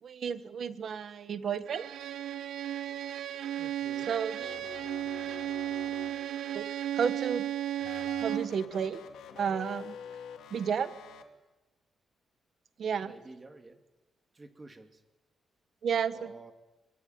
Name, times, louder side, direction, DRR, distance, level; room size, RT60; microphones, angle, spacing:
voice 1, 0.0-1.9 4.1-4.7 5.7-6.1 6.5-7.5 8.2-9.0 9.4-10.0 10.5-10.9 12.8-13.1 15.8-16.3, right 7 dB, 50° right, 13 dB, 1.5 m, -32 dB
Bowed string instrument, 1.7-8.6, right 11 dB, 80° right, 1.1 m, -35 dB
voice 2, 3.6-4.1 13.0-13.8 14.3-15.0 16.1-16.5, right 2 dB, 20° right, 8 dB, 2.3 m, -50 dB
sound 1, 4.4-6.5 7.8-11.2, left 7 dB, 85° left, 2.5 m, -47 dB
24.0 x 20.5 x 9.5 m, 1.1 s
cardioid pair, 155°, 0 cm